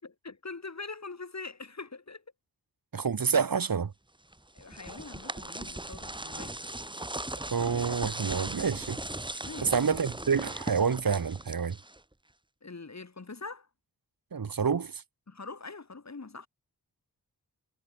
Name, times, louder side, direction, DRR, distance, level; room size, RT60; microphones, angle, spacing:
voice 1, 0.0-2.2 4.5-6.6 9.4-9.9 12.6-13.7 15.3-16.5, left 4 dB, 45° left, 4.3 m, -43 dB
voice 2, 2.9-3.9 7.5-9.0 9.6-11.8 14.3-14.9, right 6 dB, 60° right, 1.8 m, -28 dB
sound 1, 4.3-12.1, right 1 dB, 10° right, 1.7 m, -38 dB
wide cardioid pair, 70°, 39 cm